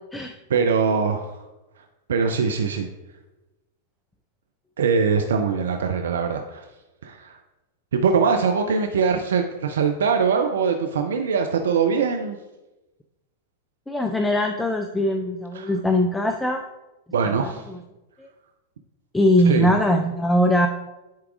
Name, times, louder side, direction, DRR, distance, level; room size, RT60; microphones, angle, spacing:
voice 1, 0.5-1.3 2.1-2.9 4.8-6.6 7.0-7.4 7.9-12.4 15.5-15.7 17.1-17.6 19.5-19.7, right 5 dB, 70° right, 6 dB, 0.5 m, -22 dB
voice 2, 13.9-16.6 17.2-17.8 18.2-18.3 19.1-20.7, left 1 dB, 5° left, 5 dB, 0.5 m, -21 dB
10.0 x 4.7 x 2.5 m, 1.0 s
figure-of-eight pair, 95°, 0 cm